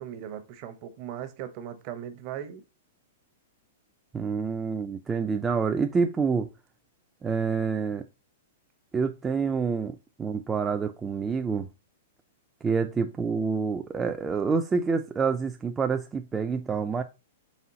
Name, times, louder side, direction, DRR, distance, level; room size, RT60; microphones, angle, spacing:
voice 1, 0.0-2.6, right 10 dB, 45° right, 0.8 m, -38 dB
voice 2, 4.1-6.5 7.2-8.0 8.9-11.7 12.6-17.0, right 5 dB, 15° right, 0.3 m, -27 dB
4.2 x 3.6 x 2.7 m
hypercardioid pair, 125°, 0 cm